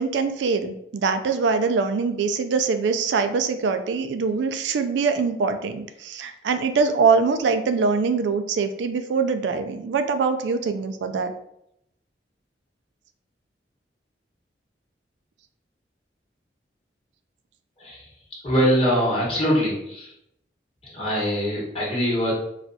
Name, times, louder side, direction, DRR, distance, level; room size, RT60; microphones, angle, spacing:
voice 1, 0.0-11.3, right 4 dB, 85° right, 8 dB, 0.3 m, -23 dB
voice 2, 18.4-20.1 20.9-22.3, equal, 35° left, -5 dB, 1.2 m, -23 dB
4.1 x 2.3 x 2.7 m, 0.77 s
head